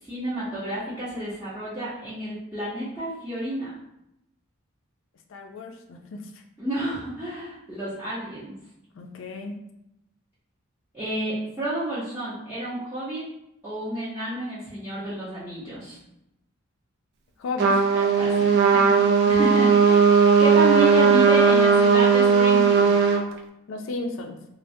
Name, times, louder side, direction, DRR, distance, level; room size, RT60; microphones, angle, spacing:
voice 1, 0.1-3.7 6.6-8.5 10.9-13.3 13.6-16.0 17.6-17.7 18.2-20.1 20.4-22.9, right 1 dB, 10° right, -13 dB, 0.6 m, -30 dB
voice 2, 5.3-6.2 8.9-9.6 17.4-17.7 21.3-21.6 23.7-24.4, left 3 dB, 65° left, 3 dB, 0.4 m, -34 dB
Trumpet, 17.6-23.2, right 5 dB, 50° right, 0.3 m, -17 dB
3.3 x 2.0 x 2.6 m, 0.83 s
head